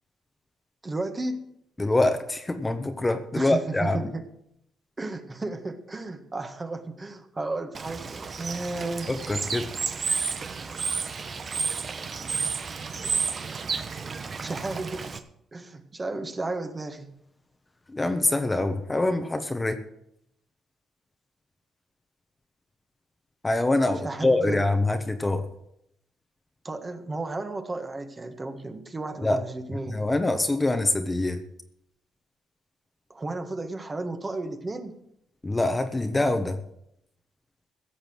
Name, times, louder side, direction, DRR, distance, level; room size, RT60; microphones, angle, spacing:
voice 1, 0.8-1.5 3.3-4.2 5.0-9.1 14.4-15.2 15.5-17.1 24.0-24.6 26.6-30.0 33.1-35.0, right 2 dB, 25° right, 6 dB, 1.6 m, -33 dB
voice 2, 1.8-4.0 9.1-9.7 17.9-19.8 23.4-25.5 29.2-29.4 29.7-31.4 35.4-36.6, left 2 dB, 15° left, 7 dB, 1.2 m, -25 dB
Bird / Water, 7.7-15.2, right 5 dB, 40° right, 1.1 m, -31 dB
16.0 x 6.8 x 7.9 m, 0.77 s
cardioid pair, 90°, 0 cm